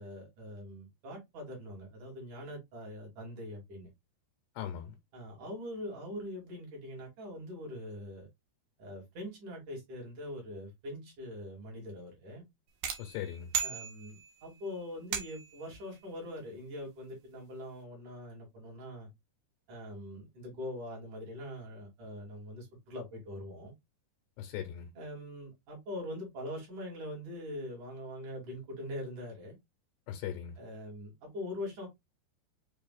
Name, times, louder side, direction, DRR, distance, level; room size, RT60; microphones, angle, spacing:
voice 1, 0.0-3.9 5.1-8.3 8.8-12.4 13.6-19.1 19.7-23.7 25.0-29.6 30.6-31.9, left 1 dB, 50° right, 3.6 m, -43 dB
voice 2, 4.6-5.0 13.0-13.5 24.4-24.9 30.1-30.6, left 9 dB, 80° left, 2.7 m, -39 dB
sound 1, 12.8-14.5 15.1-15.7, right 7 dB, 80° right, 1.9 m, -36 dB
7.0 x 3.3 x 2.3 m
omnidirectional pair, 5.1 m